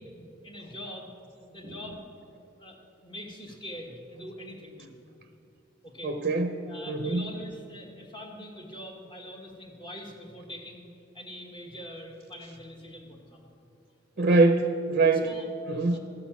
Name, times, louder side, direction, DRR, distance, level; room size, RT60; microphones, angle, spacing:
voice 1, 0.0-2.1 2.6-5.0 5.8-6.2 6.7-13.5 14.2-14.4 15.1-16.0, equal, 25° left, 1 dB, 1.4 m, -44 dB
voice 2, 6.0-7.3 14.2-15.3 15.7-16.0, right 3 dB, 50° right, 6 dB, 0.6 m, -24 dB
13.0 x 6.2 x 7.1 m, 2.6 s
head